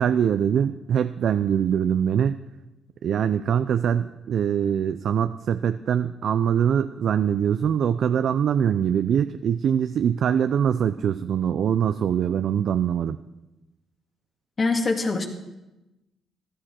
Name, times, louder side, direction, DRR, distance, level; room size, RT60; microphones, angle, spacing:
voice 1, 0.0-2.4 3.0-13.2, right 8 dB, 65° right, 11 dB, 0.4 m, -23 dB
voice 2, 14.6-15.2, left 3 dB, 35° left, 4 dB, 1.8 m, -23 dB
14.5 x 12.5 x 4.4 m, 0.99 s
cardioid pair, 90°, 0 cm